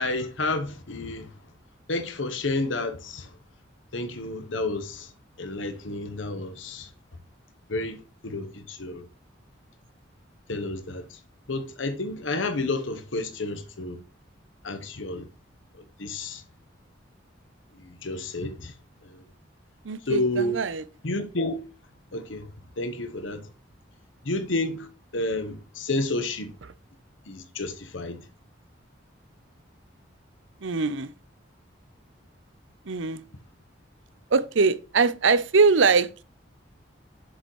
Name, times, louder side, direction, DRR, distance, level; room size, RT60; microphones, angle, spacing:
voice 1, 0.0-1.3 1.9-3.3 3.9-5.1 5.4-6.9 7.7-9.1 10.5-11.2 11.5-14.0 14.6-15.3 15.7-16.4 17.8-18.7 19.0-19.2 20.1-20.6 21.0-21.6 22.1-22.5 22.8-23.5 24.2-24.9 25.1-26.6 27.3-28.2, left 2 dB, 80° left, 1.0 m, -30 dB
voice 2, 19.8-20.8 30.6-31.1 32.9-33.2 34.3-36.1, right 4 dB, 80° right, 0.7 m, -22 dB
7.7 x 6.9 x 3.1 m
head